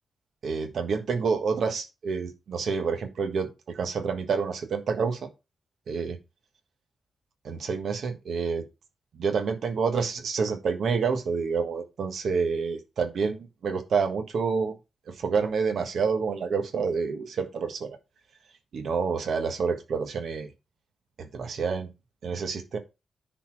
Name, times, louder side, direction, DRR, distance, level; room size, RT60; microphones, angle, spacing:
voice 1, 0.4-5.3 5.9-6.2 7.4-8.6 9.2-13.4 13.6-14.7 15.2-18.0 18.7-20.5 21.2-21.9 22.2-22.8, right 5 dB, 60° right, 6 dB, 1.4 m, -28 dB
10.0 x 4.2 x 4.6 m, 0.26 s
wide cardioid pair, 175°, 0 cm